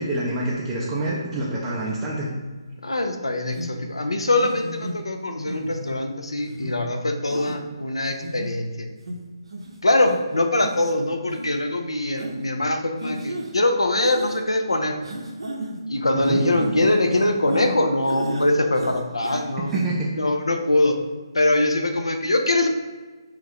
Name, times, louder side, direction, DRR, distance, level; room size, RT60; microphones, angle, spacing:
voice 1, 0.0-2.3 16.1-16.4 19.6-20.1, right 2 dB, 10° right, -7 dB, 0.4 m, -26 dB
voice 2, 2.8-8.9 9.8-15.0 15.9-19.7 20.1-21.0 21.3-22.7, left 2 dB, 85° left, 6 dB, 0.4 m, -23 dB
sound 1, 3.6-3.7 4.4-4.9 5.5-5.9 6.5-6.7 7.3-7.6 8.1-8.5 9.1-9.2 9.5-9.7 10.1-10.2 10.6-10.9 11.3-11.4 12.2-12.4 13.0-13.5 14.0-14.4 15.0-15.8 16.2-17.7 18.1-18.5 18.7-19.4 19.7-19.8, right 1 dB, 80° right, 0.5 m, -32 dB
2.5 x 2.4 x 3.4 m, 1.3 s
figure-of-eight pair, 145°, 3 cm